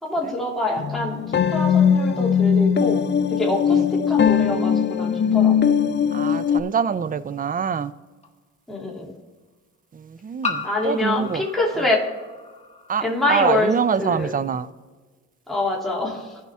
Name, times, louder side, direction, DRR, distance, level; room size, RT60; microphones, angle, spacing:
voice 1, 0.0-5.8 8.7-9.1 10.6-12.0 13.0-14.3 15.5-16.4, left 2 dB, ahead, -5 dB, 2.8 m, -25 dB
sound 1, 0.8-6.6, left 7 dB, 35° left, 0.6 m, -20 dB
voice 2, 6.1-7.9 9.9-11.4 12.9-13.0 13.3-14.7, right 7 dB, 30° right, 15 dB, 0.5 m, -25 dB
sound 2, 6.5-6.6 8.2-8.3 10.4-12.9, left 4 dB, 20° left, 1.4 m, -34 dB
16.0 x 5.7 x 3.6 m, 1.3 s
cardioid pair, 90°, 30 cm